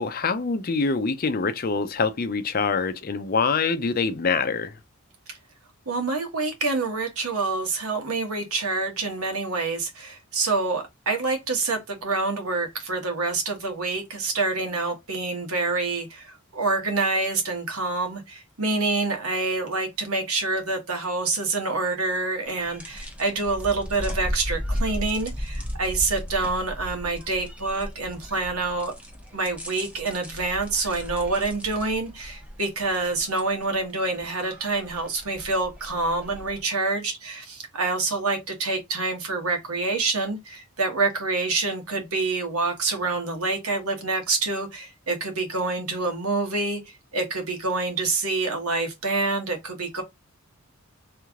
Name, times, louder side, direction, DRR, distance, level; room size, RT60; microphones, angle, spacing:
voice 1, 0.0-4.7, left 4 dB, 40° left, 0.5 m, -25 dB
voice 2, 5.9-28.9 29.3-46.8 47.1-50.0, right 3 dB, 80° right, 1.4 m, -27 dB
sound 1, 22.5-36.6, equal, 5° right, 0.8 m, -36 dB
3.3 x 3.2 x 3.6 m
head